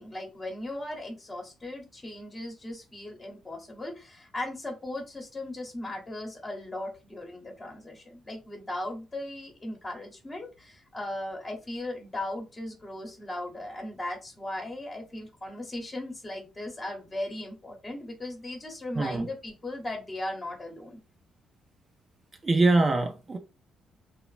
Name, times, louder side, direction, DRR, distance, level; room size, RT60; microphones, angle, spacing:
voice 1, 0.0-21.0, left 1 dB, 25° left, 0.9 m, -37 dB
voice 2, 19.0-19.3 22.4-23.4, right 2 dB, 30° right, 0.4 m, -23 dB
3.0 x 2.0 x 2.4 m
cardioid pair, 90°, 0 cm